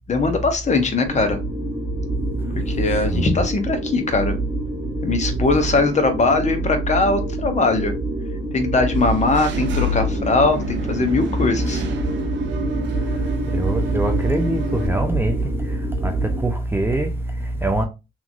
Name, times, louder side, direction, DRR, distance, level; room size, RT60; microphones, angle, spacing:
voice 1, 0.1-1.4 2.7-4.4 5.0-7.9 8.5-11.8, left 3 dB, 35° left, 0.7 m, -20 dB
sound 1, 1.0-16.4, right 2 dB, 60° left, 1.6 m, -27 dB
Engine / Mechanisms, 8.9-14.9, right 1 dB, 65° right, 0.6 m, -28 dB
voice 2, 12.8-17.8, right 1 dB, 10° right, 0.4 m, -23 dB
2.9 x 2.5 x 2.5 m
cardioid pair, 90°, 20 cm